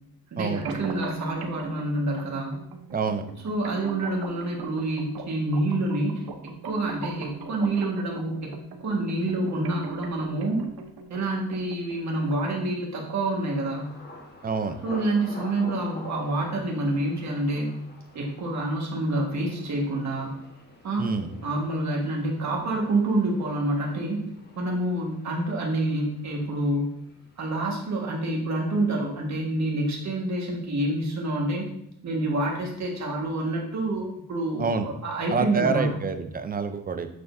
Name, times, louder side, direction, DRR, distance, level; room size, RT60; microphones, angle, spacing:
voice 1, 0.3-2.6 3.4-6.2 6.6-8.3 8.8-10.6 11.1-13.9 14.8-17.8 18.1-20.4 20.8-21.2 21.4-24.2 24.6-26.9 27.4-31.7 32.0-36.0, right 2 dB, 50° right, -1 dB, 1.6 m, -27 dB
sound 1, 0.6-12.6, right 5 dB, 75° right, 0.8 m, -40 dB
voice 2, 2.9-3.2 14.4-14.7 21.0-21.4 34.6-34.9 35.3-37.1, right 5 dB, 25° right, 9 dB, 0.5 m, -27 dB
Thunder, 13.3-29.0 29.3-29.9 30.3-30.6, left 1 dB, 25° left, 1.3 m, -47 dB
6.9 x 6.2 x 2.6 m, 0.74 s
cardioid pair, 130°, 37 cm